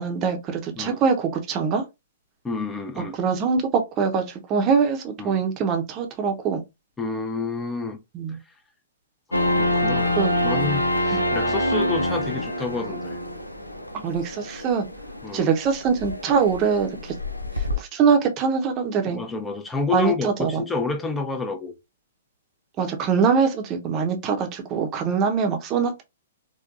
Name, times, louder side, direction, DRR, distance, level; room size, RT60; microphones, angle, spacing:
voice 1, 0.0-1.8 3.0-3.6 4.0-6.6 8.1-8.4 10.2-10.3 11.1-11.2 14.0-14.9 15.3-17.1 17.8-19.2 19.9-20.6 22.8-26.0, right 6 dB, 25° right, 0.8 m, -23 dB
voice 2, 2.4-3.2 5.2-5.4 7.0-8.0 9.3-10.1 10.4-13.2 15.2-15.5 19.1-21.7, left 4 dB, 10° left, 0.6 m, -29 dB
sound 1, 9.3-17.8, left 1 dB, 90° left, 0.5 m, -26 dB
4.5 x 2.2 x 2.5 m
figure-of-eight pair, 115°, 0 cm